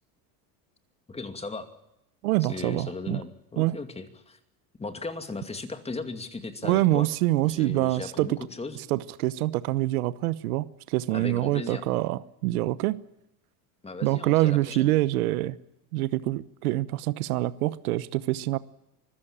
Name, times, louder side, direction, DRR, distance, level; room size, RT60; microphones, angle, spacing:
voice 1, 1.1-1.7 2.5-4.4 4.8-7.1 7.4-8.8 11.1-11.8 13.8-14.9, left 3 dB, 15° left, 8 dB, 2.5 m, -37 dB
voice 2, 2.2-3.2 3.6-3.8 6.6-8.4 8.9-13.0 14.0-15.6 15.9-18.6, right 17 dB, 90° right, 17 dB, 1.1 m, -25 dB
24.5 x 15.0 x 8.8 m, 0.86 s
supercardioid pair, 115°, 43 cm